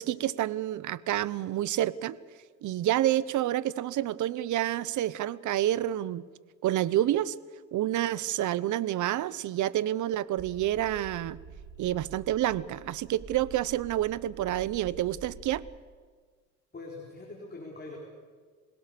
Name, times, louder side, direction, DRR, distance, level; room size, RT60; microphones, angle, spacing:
voice 1, 0.0-2.2 2.6-6.2 6.6-7.3 7.7-11.4 11.8-15.6, right 13 dB, 75° right, 19 dB, 0.8 m, -28 dB
sound 1, 10.4-15.6, right 5 dB, 30° right, 5.2 m, -48 dB
voice 2, 16.7-18.0, left 3 dB, 30° left, -2 dB, 4.4 m, -43 dB
27.0 x 17.5 x 6.8 m, 1.5 s
cardioid pair, 90°, 30 cm